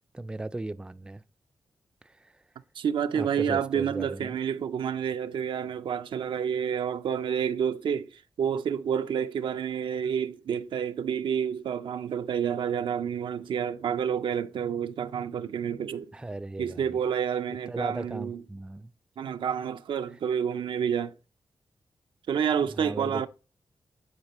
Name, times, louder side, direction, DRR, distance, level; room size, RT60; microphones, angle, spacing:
voice 1, 0.1-1.2 2.0-2.4 3.1-4.4 16.1-17.0 17.7-18.9 22.6-23.3, right 2 dB, 10° right, 0.4 m, -36 dB
voice 2, 2.8-16.1 16.6-18.4 19.2-21.1 22.3-23.3, right 8 dB, 80° right, 0.5 m, -29 dB
9.6 x 4.1 x 2.9 m
cardioid pair, 70°, 8 cm